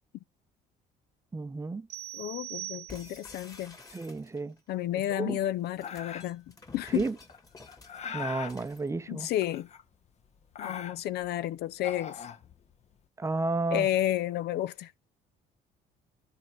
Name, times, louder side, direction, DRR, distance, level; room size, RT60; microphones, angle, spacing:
voice 1, 1.3-1.9 3.9-4.6 5.1-5.4 6.9-7.2 8.1-9.3 13.2-13.9, right 3 dB, 15° right, 0.7 m, -32 dB
sound 1, 1.9-3.4, right 15 dB, 75° right, 0.7 m, -41 dB
voice 2, 2.1-3.8 4.7-7.0 9.1-9.7 10.6-12.2 13.7-15.0, left 13 dB, 70° left, 0.6 m, -31 dB
sound 2, 2.9-4.6 5.6-8.9, left 3 dB, 20° left, 2.0 m, -51 dB
sound 3, 5.8-6.5 7.3-8.6 9.4-10.1 10.4-11.3 11.7-12.9, left 6 dB, 40° left, 1.0 m, -41 dB
13.0 x 4.6 x 4.7 m
cardioid pair, 110°, 17 cm